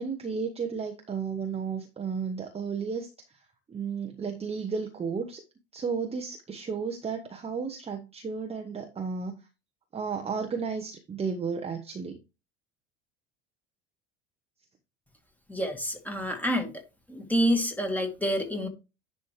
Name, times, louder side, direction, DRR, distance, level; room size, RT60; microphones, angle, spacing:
voice 1, 0.0-3.4 3.7-5.4 5.7-9.5 9.9-12.2, right 5 dB, 15° right, 0.9 m, -33 dB
voice 2, 15.5-16.7 17.1-18.7, equal, 5° left, 1.8 m, -28 dB
10.5 x 4.2 x 3.2 m
figure-of-eight pair, 75°, 35 cm